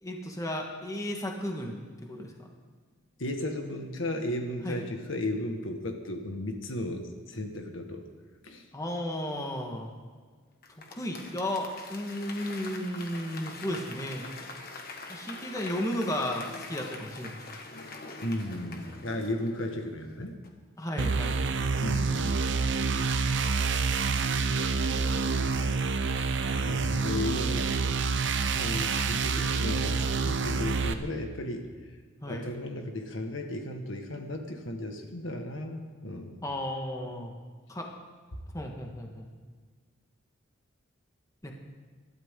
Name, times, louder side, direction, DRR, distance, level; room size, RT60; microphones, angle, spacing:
voice 1, 0.0-2.5 4.6-4.9 8.7-9.9 10.9-14.3 15.1-17.4 20.8-21.4 32.2-32.5 36.4-37.3 37.7-37.9 38.5-39.3 41.4-41.5, left 1 dB, 15° left, 1 dB, 1.6 m, -34 dB
voice 2, 3.2-8.1 8.4-8.7 18.2-20.4 21.8-22.4 25.0-27.7 28.5-32.0 32.3-36.4, left 1 dB, 80° left, 4 dB, 1.7 m, -35 dB
Applause / Crowd, 10.6-20.1 20.4-20.5, left 3 dB, 50° left, 1.5 m, -44 dB
sound 1, 21.0-30.9, right 4 dB, 65° right, 0.8 m, -27 dB
24.0 x 12.5 x 3.8 m, 1.5 s
head